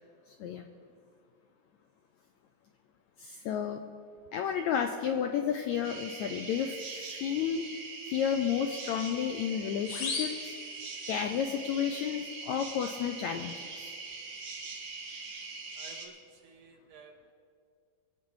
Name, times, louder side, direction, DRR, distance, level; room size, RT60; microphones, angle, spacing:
voice 1, 3.2-3.9 4.3-7.6 8.1-10.5 11.1-13.9, left 8 dB, 90° left, 5 dB, 1.6 m, -32 dB
sound 1, 5.8-16.1, right 4 dB, 50° right, 2.1 m, -42 dB
sound 2, 9.8-11.4, left 4 dB, 65° left, 3.2 m, -38 dB
voice 2, 15.7-17.3, right 4 dB, 70° right, 3 dB, 2.6 m, -54 dB
23.5 x 8.2 x 4.8 m, 2.2 s
omnidirectional pair, 4.0 m